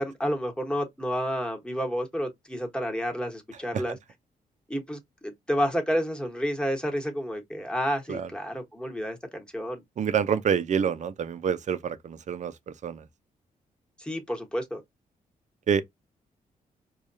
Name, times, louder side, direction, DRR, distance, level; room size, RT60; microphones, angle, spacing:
voice 1, 0.0-3.9 4.7-9.8 14.0-14.8, equal, 5° left, 1.2 m, -30 dB
voice 2, 10.0-13.1 15.7-15.8, right 7 dB, 50° right, 0.5 m, -27 dB
4.8 x 2.3 x 2.6 m
cardioid pair, 85°, 15 cm